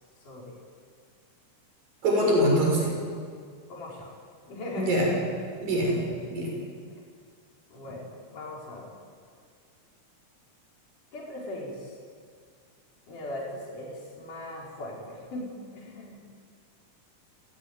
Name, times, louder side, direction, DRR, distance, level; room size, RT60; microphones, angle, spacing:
voice 1, 0.2-0.6 3.7-4.1 4.5-4.9 6.0-6.1 7.7-8.9 11.1-12.0 13.1-15.5 15.8-16.2, left 1 dB, 65° left, -4 dB, 6.3 m, -39 dB
voice 2, 2.0-3.0 4.7-5.1 5.6-6.5, equal, 85° right, -1 dB, 8.3 m, -24 dB
27.0 x 18.0 x 9.6 m, 2.1 s
omnidirectional pair, 3.9 m